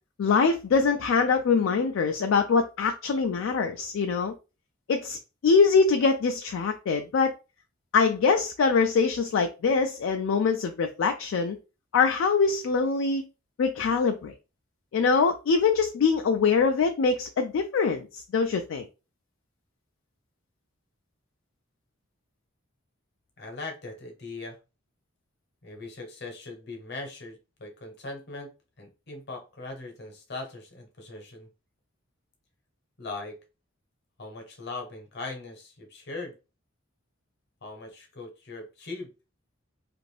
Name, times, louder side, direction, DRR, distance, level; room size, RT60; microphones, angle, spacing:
voice 1, 0.2-4.3 4.9-5.2 5.4-7.3 7.9-11.6 11.9-13.2 13.6-14.3 14.9-18.9, left 5 dB, 75° left, 0.3 m, -23 dB
voice 2, 23.4-24.6 25.6-28.5 28.8-31.5 33.0-33.4 34.2-36.4 37.6-39.1, left 3 dB, 55° left, 0.9 m, -40 dB
2.5 x 2.5 x 3.2 m
head